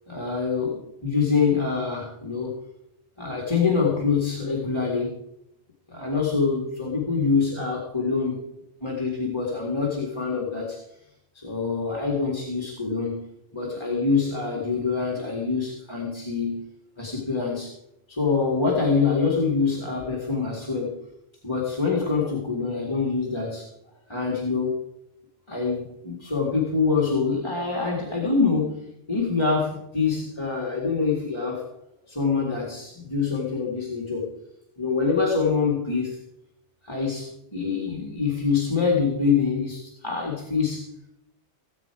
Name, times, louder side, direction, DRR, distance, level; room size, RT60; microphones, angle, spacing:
voice 1, 0.1-2.5 3.2-5.2 5.9-8.4 8.8-10.8 11.3-13.3 13.5-16.6 17.0-17.7 18.1-20.9 21.4-23.7 24.1-24.8 25.5-31.6 32.1-34.3 34.8-36.2 36.8-40.9, left 5 dB, 25° left, -3 dB, 2.2 m, -25 dB
18.5 x 8.1 x 4.9 m, 0.83 s
omnidirectional pair, 1.2 m